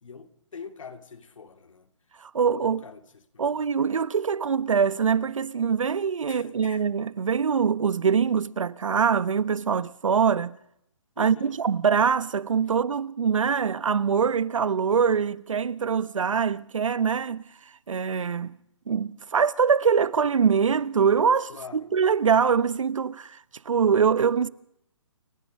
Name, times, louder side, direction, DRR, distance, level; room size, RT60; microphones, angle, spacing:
voice 1, 0.0-1.9 2.4-3.6 6.3-6.9 11.2-11.6 21.5-21.9, left 5 dB, 80° left, 2.7 m, -44 dB
voice 2, 2.2-2.8 3.4-10.5 11.2-17.4 17.9-18.5 18.9-23.4 23.6-24.5, right 6 dB, 75° right, 1.1 m, -23 dB
29.5 x 14.0 x 6.6 m
hypercardioid pair, 170°, 17 cm